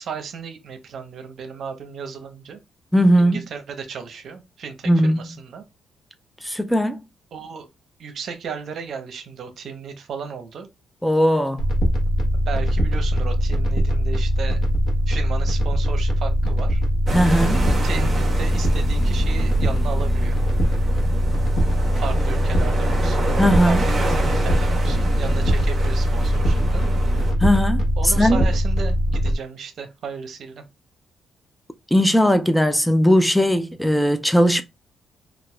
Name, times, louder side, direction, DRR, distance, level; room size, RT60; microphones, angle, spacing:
voice 1, 0.0-2.6 3.2-5.6 7.3-7.7 8.0-10.7 12.5-14.6 15.1-16.8 17.8-20.4 22.0-23.3 23.7-26.8 28.0-30.6, right 6 dB, 60° right, 0.7 m, -34 dB
voice 2, 2.9-3.4 4.9-5.2 6.4-7.0 11.0-11.6 17.1-17.6 23.4-23.9 27.4-28.4 31.9-34.6, equal, 5° left, 0.3 m, -18 dB
sound 1, 11.6-29.3, equal, 75° left, 1.0 m, -21 dB
sound 2, 17.1-27.3, right 2 dB, 30° right, 1.2 m, -29 dB
3.9 x 2.4 x 2.3 m
cardioid pair, 90°, 0 cm